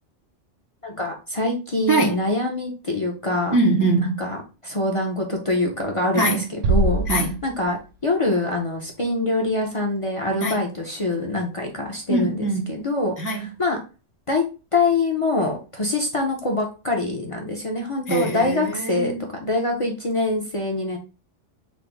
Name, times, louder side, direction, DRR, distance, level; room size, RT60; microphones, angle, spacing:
voice 1, 0.8-3.6 4.0-7.0 7.4-7.8 8.0-13.8 14.3-14.4 14.7-19.1 19.4-21.0, left 2 dB, 35° left, 0.6 m, -24 dB
voice 2, 3.5-4.2 6.1-6.4 7.1-7.4 10.4-10.6 12.1-12.7 13.2-13.5 18.1-19.2, right 2 dB, 25° right, 0.4 m, -22 dB
Bass drum, 6.6-8.1, right 2 dB, 90° right, 1.0 m, -23 dB
4.1 x 2.0 x 4.4 m
omnidirectional pair, 1.2 m